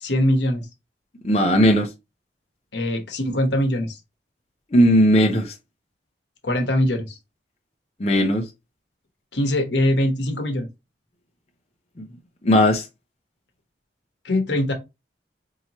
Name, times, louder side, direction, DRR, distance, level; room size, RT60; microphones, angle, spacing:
voice 1, 0.0-0.7 2.7-4.0 6.4-7.2 9.3-10.7 14.2-14.7, left 1 dB, 75° left, 1.1 m, -22 dB
voice 2, 1.2-1.9 4.7-5.5 8.0-8.4 12.0-12.1 12.4-12.8, equal, 35° left, 0.6 m, -17 dB
4.7 x 2.8 x 2.9 m
head